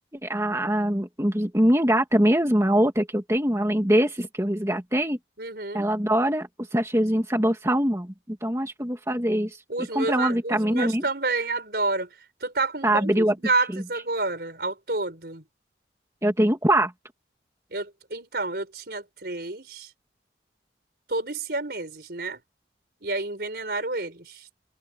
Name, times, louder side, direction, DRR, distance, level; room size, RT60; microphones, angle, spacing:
voice 1, 0.2-5.2 5.7-11.0 12.8-13.3 13.7-13.8 16.2-16.9, right 1 dB, 15° right, 2.5 m, -23 dB
voice 2, 5.4-5.9 9.7-12.1 12.4-15.4 17.7-19.9 21.1-22.4 23.0-24.5, right 3 dB, 60° right, 4.8 m, -29 dB
head